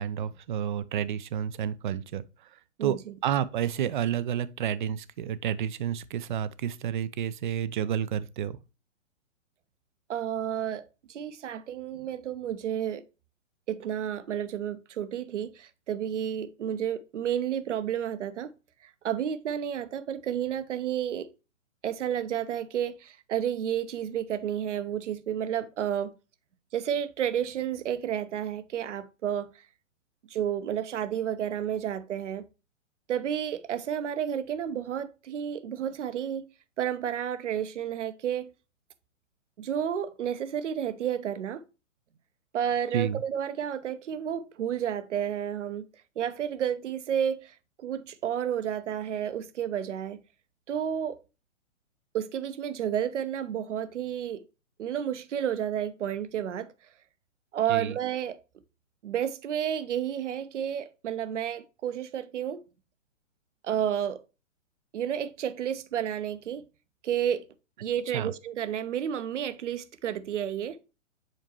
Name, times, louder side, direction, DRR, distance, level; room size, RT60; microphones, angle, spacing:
voice 1, 0.0-2.2 2.8-8.6 42.9-43.2 57.7-58.0 68.1-68.3, right 9 dB, 40° right, 0.5 m, -30 dB
voice 2, 10.1-13.0 13.7-18.5 19.0-21.3 21.8-26.1 26.7-29.5 30.3-32.4 33.1-36.4 36.8-38.5 39.6-41.6 42.5-45.9 46.2-50.2 50.7-51.2 52.1-54.4 54.8-56.7 57.5-58.4 59.0-62.6 63.6-64.2 64.9-66.6 67.0-67.4 67.8-70.8, right 9 dB, 65° right, 0.8 m, -31 dB
7.6 x 4.4 x 3.0 m
figure-of-eight pair, 125°, 39 cm